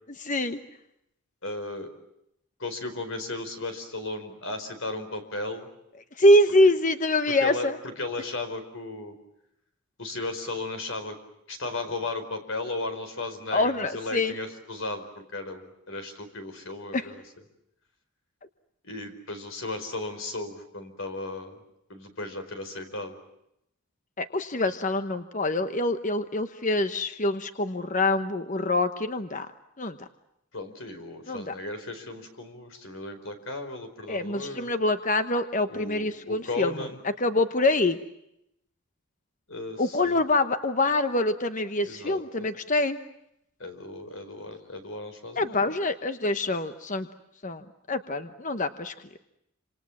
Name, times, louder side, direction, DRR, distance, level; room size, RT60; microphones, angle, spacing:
voice 1, 0.2-0.6 6.2-7.8 13.5-14.3 16.9-17.1 24.2-29.5 29.8-30.0 31.3-31.5 34.1-38.0 39.8-43.0 45.4-47.1 47.4-48.9, left 2 dB, 35° left, 9 dB, 1.0 m, -25 dB
voice 2, 1.4-1.9 2.6-5.7 7.4-7.7 8.0-9.1 10.0-11.2 11.5-15.0 15.3-17.2 18.8-21.5 21.9-23.1 30.5-34.7 35.7-37.0 39.5-40.2 41.8-42.2 43.6-45.7, left 2 dB, 60° left, 7 dB, 4.8 m, -35 dB
28.0 x 27.0 x 7.3 m, 0.81 s
head